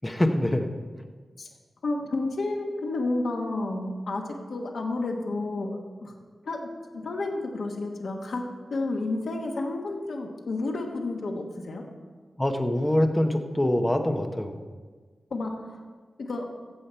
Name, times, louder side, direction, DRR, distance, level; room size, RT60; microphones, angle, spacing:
voice 1, 0.0-0.7 12.4-14.6, left 1 dB, 10° left, 5 dB, 0.8 m, -24 dB
voice 2, 1.8-4.2 4.5-6.1 6.4-6.7 6.9-8.4 8.7-11.8 15.3-15.5 16.2-16.5, left 2 dB, 75° left, 1 dB, 1.3 m, -30 dB
15.0 x 7.2 x 4.4 m, 1.5 s
wide cardioid pair, 165°, 0 cm